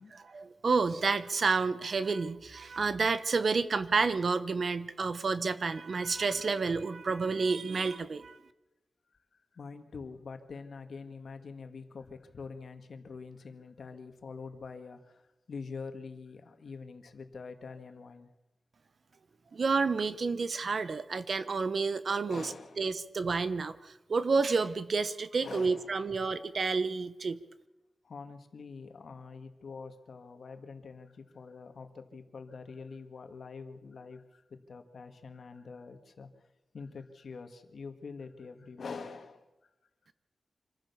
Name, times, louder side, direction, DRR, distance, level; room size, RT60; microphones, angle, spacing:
voice 1, 0.1-8.4 19.5-27.4, right 4 dB, 50° right, 13 dB, 0.9 m, -30 dB
voice 2, 9.5-15.2 15.5-18.3 22.3-22.9 25.4-26.0 28.0-36.3 36.7-39.5, left 4 dB, 65° left, 7 dB, 1.9 m, -45 dB
26.0 x 15.0 x 7.1 m, 1.0 s
wide cardioid pair, 170°, 0 cm